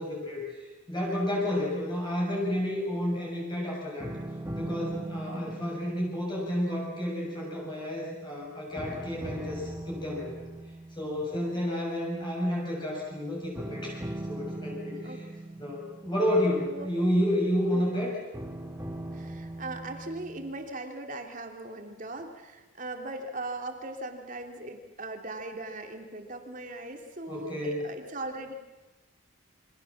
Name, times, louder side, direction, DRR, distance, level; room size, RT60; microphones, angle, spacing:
voice 1, 0.0-4.1 4.5-10.5 11.0-14.0 14.3-15.2 15.6-18.2 27.3-27.9, left 1 dB, 25° left, -3 dB, 6.9 m, -30 dB
sound 1, 4.0-8.4 8.8-12.0 13.6-17.6 18.3-20.5, right 1 dB, 15° right, 3.2 m, -40 dB
voice 2, 5.2-6.0 11.3-11.6 15.0-15.2 16.6-16.9 17.7-17.9 19.1-28.5, right 2 dB, 40° right, 4 dB, 3.2 m, -39 dB
28.5 x 25.5 x 7.4 m, 1.1 s
head